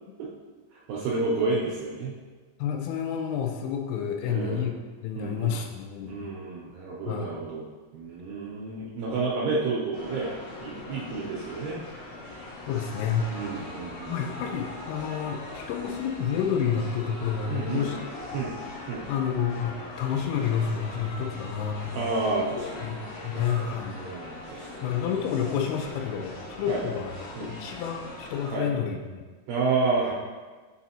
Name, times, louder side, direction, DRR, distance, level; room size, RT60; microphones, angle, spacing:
voice 1, 0.9-2.1 4.3-4.7 5.2-5.6 6.0-7.7 7.9-11.8 13.3-14.2 17.5-17.9 18.3-18.5 18.9-19.0 21.9-22.9 23.3-23.7 23.9-24.8 26.7-26.8 27.4-27.5 28.5-28.6 29.5-30.1, right 3 dB, 80° right, -6 dB, 2.5 m, -30 dB
voice 2, 2.6-4.7 5.0-6.3 7.1-7.3 12.7-13.3 14.1-18.0 18.3-18.4 19.1-22.1 22.6-23.0 23.2-24.0 24.6-29.2, left 8 dB, 85° left, 3 dB, 3.2 m, -29 dB
sound 1, 9.9-28.5, left 2 dB, 70° left, 2.7 m, -41 dB
8.4 x 4.1 x 2.8 m, 1.4 s
omnidirectional pair, 5.6 m